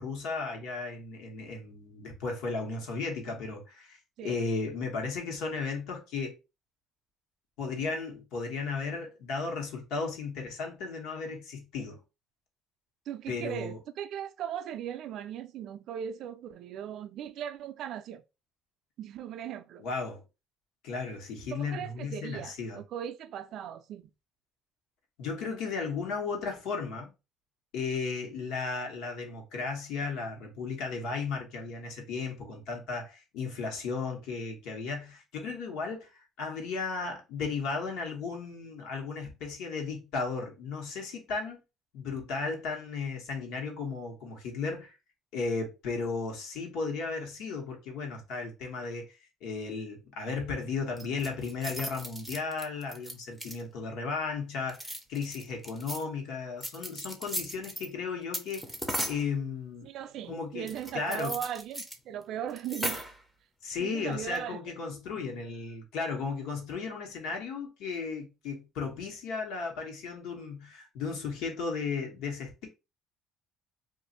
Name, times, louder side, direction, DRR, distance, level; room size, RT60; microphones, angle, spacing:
voice 1, 0.0-6.4 7.6-12.0 13.3-13.8 19.8-20.2 20.8-22.8 25.2-27.1 27.7-36.1 36.4-41.6 41.9-44.9 45.3-58.6 59.1-59.9 60.3-61.3 63.6-72.7, left 4 dB, 70° left, 1.2 m, -35 dB
voice 2, 13.1-18.2 19.0-19.8 21.5-24.1 59.8-63.0 63.8-64.7, right 9 dB, 50° right, 0.3 m, -38 dB
sound 1, 51.0-53.8 54.6-56.0 56.6-57.9 58.3-59.3 60.7-62.0 62.2-62.3 62.5-63.2 64.1-64.5, equal, ahead, 0.5 m, -37 dB
2.5 x 2.5 x 4.1 m
cardioid pair, 165°, 0 cm